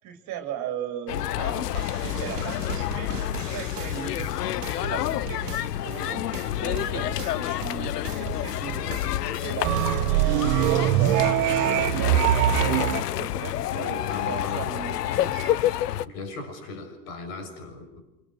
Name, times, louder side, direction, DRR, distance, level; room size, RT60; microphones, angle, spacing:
voice 1, 0.0-4.2 4.6-6.3 6.6-9.1 9.4-11.2 11.6-12.8 13.2-15.5, right 8 dB, 35° right, 5 dB, 3.1 m, -37 dB
sound 1, 1.1-16.1, left 12 dB, 70° left, 0.9 m, -29 dB
sound 2, 1.7-6.0 6.3-9.5 9.8-11.4, right 8 dB, 70° right, 2.3 m, -39 dB
sound 3, 9.6-13.0, right 13 dB, 50° right, 1.4 m, -22 dB
voice 2, 13.7-14.7 16.0-18.0, left 3 dB, 55° left, 7 dB, 6.6 m, -37 dB
29.0 x 26.5 x 6.4 m, 0.96 s
hypercardioid pair, 100°, 50 cm